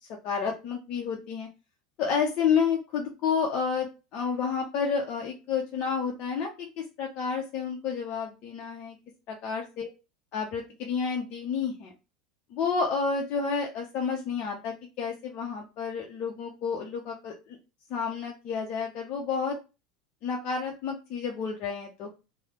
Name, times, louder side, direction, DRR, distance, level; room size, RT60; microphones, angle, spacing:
voice 1, 0.0-1.5 2.0-9.0 9.3-9.9 10.3-11.9 12.5-17.6 17.9-19.6 20.2-22.1, left 6 dB, 50° left, 0 dB, 0.5 m, -30 dB
3.0 x 2.0 x 2.9 m, 0.29 s
hypercardioid pair, 85°, 3 cm